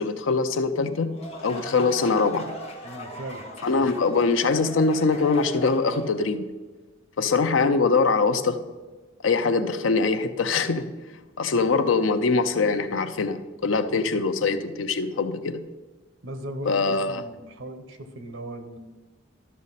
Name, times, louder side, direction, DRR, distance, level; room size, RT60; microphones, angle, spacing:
voice 1, 0.0-2.6 3.6-6.5 7.2-8.6 9.2-10.9 11.4-15.6 16.6-17.2, left 4 dB, 85° left, 9 dB, 0.6 m, -23 dB
sound 1, 0.9-6.2, equal, 35° left, 1.3 m, -40 dB
voice 2, 2.8-3.5 3.8-3.9 16.2-18.8, right 1 dB, 85° right, 8 dB, 1.1 m, -38 dB
12.5 x 6.3 x 4.1 m, 1.2 s
head